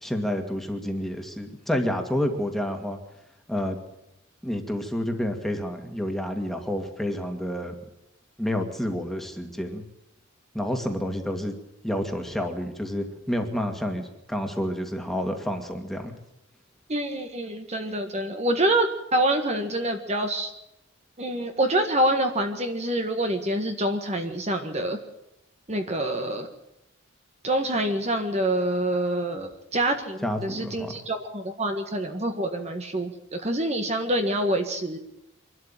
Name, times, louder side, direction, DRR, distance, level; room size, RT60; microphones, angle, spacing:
voice 1, 0.0-3.0 3.5-3.8 4.4-7.7 8.4-9.8 10.5-11.5 11.8-16.1 30.2-30.9, equal, ahead, 4 dB, 2.3 m, -29 dB
voice 2, 16.9-20.5 21.2-25.0 25.7-26.5 27.4-35.0, right 1 dB, 30° right, 5 dB, 1.7 m, -26 dB
24.5 x 12.5 x 9.1 m, 0.90 s
head